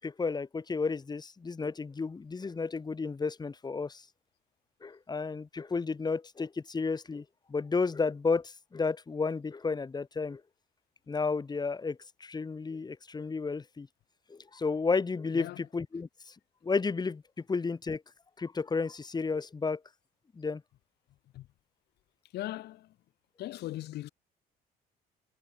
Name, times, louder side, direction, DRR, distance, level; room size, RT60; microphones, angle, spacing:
voice 1, 0.0-4.0 4.8-7.2 7.5-10.4 11.1-13.9 14.3-16.3 16.6-17.2 17.5-18.0 18.4-19.8 20.4-20.6, left 4 dB, 25° left, 5.4 m, -32 dB
voice 2, 22.3-22.9 23.4-24.1, left 15 dB, 75° left, 6.9 m, -39 dB
cardioid pair, 110°, 17 cm